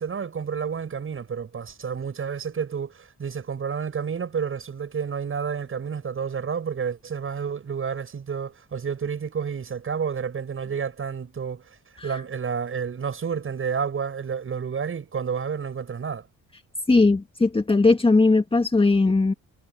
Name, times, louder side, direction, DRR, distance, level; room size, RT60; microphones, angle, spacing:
voice 1, 0.0-11.8 12.0-16.2, right 6 dB, 45° right, 7.5 m, -30 dB
voice 2, 16.9-19.3, left 3 dB, 20° left, 1.8 m, -19 dB
cardioid pair, 90°, 30 cm